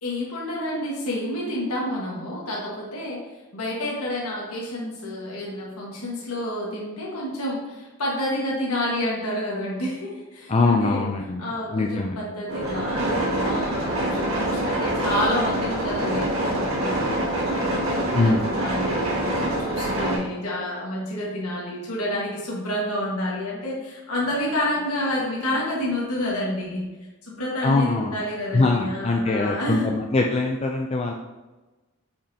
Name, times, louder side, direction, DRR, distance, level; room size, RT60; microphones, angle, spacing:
voice 1, 0.0-3.2 3.5-11.1 11.4-17.7 18.1-26.9 27.2-30.0, left 1 dB, 80° left, -5 dB, 1.6 m, -29 dB
voice 2, 10.5-12.2 18.1-18.5 27.6-28.2 28.5-31.1, left 3 dB, 30° left, 2 dB, 0.4 m, -22 dB
sound 1, 12.5-20.2, right 1 dB, 65° right, 2.0 m, -25 dB
7.0 x 5.3 x 2.8 m, 1.1 s
head